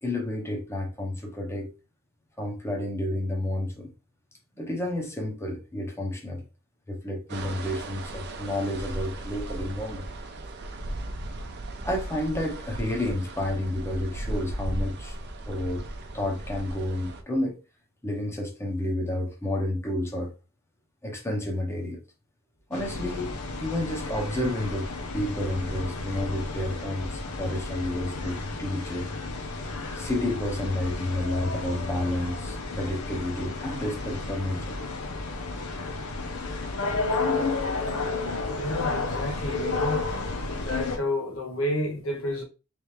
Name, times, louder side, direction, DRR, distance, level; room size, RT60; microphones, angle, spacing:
voice 1, 0.0-1.7 2.4-3.9 4.6-6.4 6.9-10.1 11.8-15.2 15.5-15.9 16.1-17.6 18.0-20.3 21.0-22.0 22.7-24.9 25.1-29.1 29.9-34.8, left 1 dB, 10° left, 0.9 m, -30 dB
sound 1, 7.3-17.2, right 1 dB, 50° right, 0.7 m, -36 dB
sound 2, 22.7-41.0, left 3 dB, 85° left, 0.8 m, -32 dB
voice 2, 38.5-40.1 40.6-42.4, left 1 dB, 70° left, 1.3 m, -30 dB
3.5 x 3.4 x 3.2 m
head